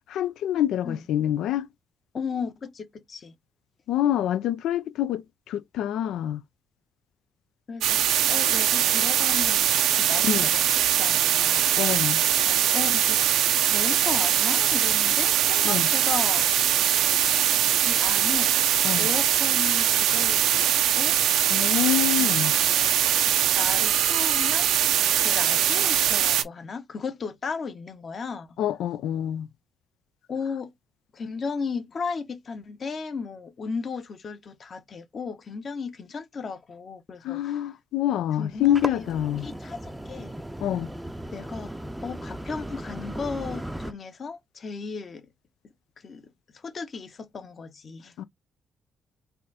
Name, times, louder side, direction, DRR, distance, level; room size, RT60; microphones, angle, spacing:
voice 1, 0.1-1.7 3.9-6.4 10.2-10.5 11.8-12.2 15.6-15.9 18.8-19.1 21.5-22.5 28.6-29.5 37.2-39.5 40.6-40.9 48.2-48.3, left 11 dB, 80° left, 0.4 m, -26 dB
voice 2, 2.1-3.3 7.7-8.0 8.3-10.7 11.0-11.7 12.4-13.2 13.7-16.5 17.8-18.5 19.0-21.1 22.2-23.0 23.5-24.7 25.2-28.6 30.3-30.7 31.1-37.6 38.4-39.1 39.4-40.4 41.3-41.7 42.0-45.3 46.0-46.3 46.5-48.1, left 5 dB, 45° left, 1.1 m, -35 dB
sound 1, 7.8-26.4, right 10 dB, 85° right, 0.6 m, -22 dB
sound 2, 38.5-43.9, right 1 dB, 5° right, 0.6 m, -36 dB
4.2 x 2.6 x 4.1 m
cardioid pair, 90°, 0 cm